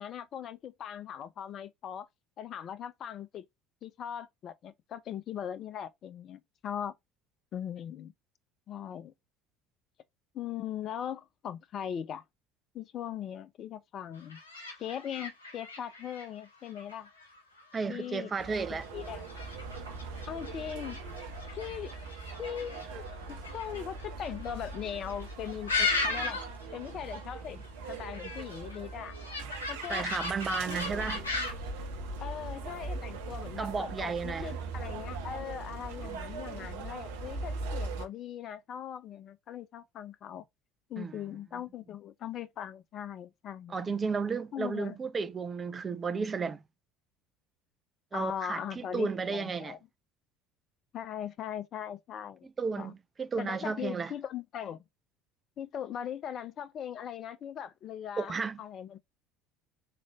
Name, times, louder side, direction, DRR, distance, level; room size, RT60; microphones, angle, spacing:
voice 1, 0.0-2.1 2.4-3.5 3.8-6.9 7.5-8.1 8.7-9.1 10.3-12.2 12.7-14.4 14.8-17.1 17.9-18.3 18.7-19.3 20.3-21.0 21.5-21.9 22.4-26.4 26.7-29.2 29.7-30.1 30.7-31.1 32.2-40.4 40.9-43.8 44.5-45.0 48.1-49.8 50.9-52.5 52.7-52.9 53.4-54.8 55.6-59.0, left 9 dB, 40° left, 0.5 m, -40 dB
sound 1, 14.2-26.6 26.9-27.3 27.6-31.7, left 3 dB, 75° left, 1.8 m, -37 dB
voice 2, 17.7-18.8 29.9-31.2 33.6-34.5 41.0-41.1 43.7-46.6 48.1-49.8 52.6-54.1 58.2-58.6, right 5 dB, 25° right, 0.5 m, -33 dB
sound 2, 18.4-38.1, right 3 dB, 65° right, 0.7 m, -40 dB
3.7 x 3.2 x 2.2 m
figure-of-eight pair, 65°, 0 cm